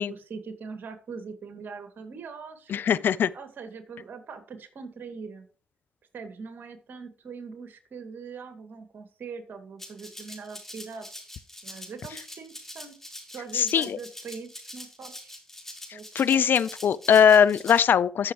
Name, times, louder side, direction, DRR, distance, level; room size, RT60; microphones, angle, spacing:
voice 1, 0.0-3.0 3.3-5.5 6.1-11.1 11.6-13.0 13.3-15.4 15.9-16.0 16.3-16.9, right 5 dB, 65° right, 2.2 m, -42 dB
voice 2, 2.7-3.3 13.5-14.0 16.2-18.3, left 8 dB, 65° left, 0.5 m, -20 dB
Rattle (instrument), 9.8-17.8, left 1 dB, 10° left, 4.0 m, -44 dB
14.5 x 6.6 x 3.0 m
hypercardioid pair, 40°, 4 cm